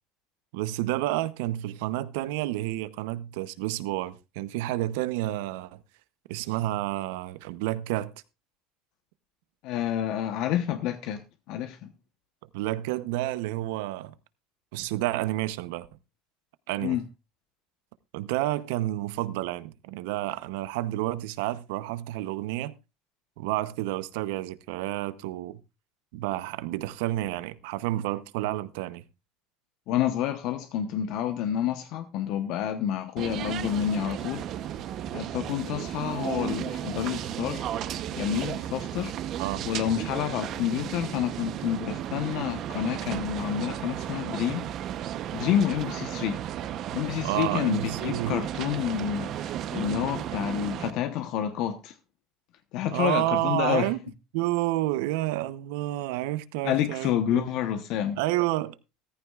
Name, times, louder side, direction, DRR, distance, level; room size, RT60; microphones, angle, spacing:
voice 1, 0.5-5.8 6.3-8.1 12.5-14.1 14.7-15.9 16.7-17.0 18.1-22.7 23.4-25.6 26.1-29.0 39.4-39.7 47.2-48.4 52.9-54.0 54.3-57.5 58.2-58.8, right 16 dB, 90° right, 0.7 m, -30 dB
voice 2, 9.6-11.2 11.5-11.9 16.8-17.0 29.9-34.4 35.1-37.6 38.2-39.1 39.6-44.7 45.3-46.4 46.9-51.9 52.7-53.9 56.6-58.2, left 10 dB, 60° left, 1.0 m, -29 dB
sound 1, 33.2-50.9, right 11 dB, 45° right, 0.8 m, -34 dB
14.5 x 14.5 x 2.4 m
cardioid pair, 155°, 0 cm